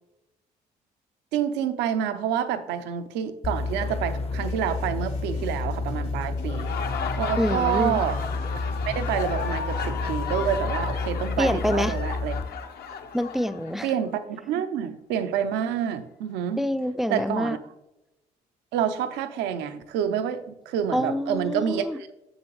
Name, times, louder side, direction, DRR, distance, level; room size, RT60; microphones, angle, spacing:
voice 1, 1.3-6.8 7.2-8.2 8.9-12.3 13.8-16.6 17.1-17.6 18.7-22.1, right 9 dB, 80° right, 10 dB, 0.6 m, -28 dB
sound 1, 3.4-12.6, left 3 dB, 35° left, 0.7 m, -30 dB
sound 2, 4.4-10.7, equal, 90° left, 1.9 m, -51 dB
Laughter, 6.4-14.0, left 6 dB, 65° left, 0.8 m, -34 dB
voice 2, 7.4-8.0 11.4-11.9 13.1-13.9 16.6-17.6 20.9-22.0, equal, ahead, 13 dB, 0.4 m, -26 dB
6.9 x 6.3 x 3.1 m, 0.94 s
supercardioid pair, 60°, 18 cm